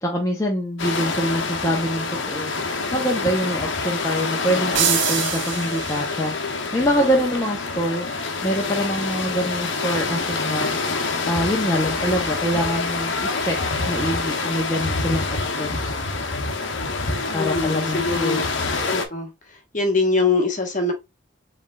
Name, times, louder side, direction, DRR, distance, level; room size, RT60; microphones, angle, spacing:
voice 1, 0.0-2.5 2.9-6.3 6.7-8.1 8.4-10.8 11.2-13.1 13.4-13.6 13.9-15.9 17.3-18.5, equal, 15° left, 0.7 m, -25 dB
sound 1, 0.8-19.1, left 3 dB, 70° left, 0.8 m, -26 dB
sound 2, 4.7-6.4, right 10 dB, 65° right, 0.6 m, -25 dB
voice 2, 17.3-18.5 18.9-19.3 19.7-20.9, left 3 dB, 40° left, 1.1 m, -23 dB
4.9 x 3.2 x 2.3 m
head